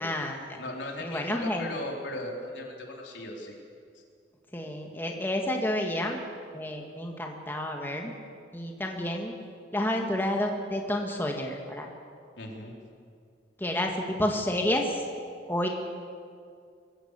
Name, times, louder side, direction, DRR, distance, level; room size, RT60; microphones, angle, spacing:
voice 1, 0.0-0.6 1.0-1.7 4.5-6.2 6.5-8.1 8.5-9.3 9.7-11.9 13.6-15.0 15.5-15.7, left 1 dB, 10° left, 1 dB, 1.9 m, -30 dB
voice 2, 0.6-3.6 3.9-4.0 12.4-12.8, left 1 dB, 80° left, 0 dB, 4.1 m, -38 dB
23.0 x 16.0 x 8.3 m, 2.3 s
head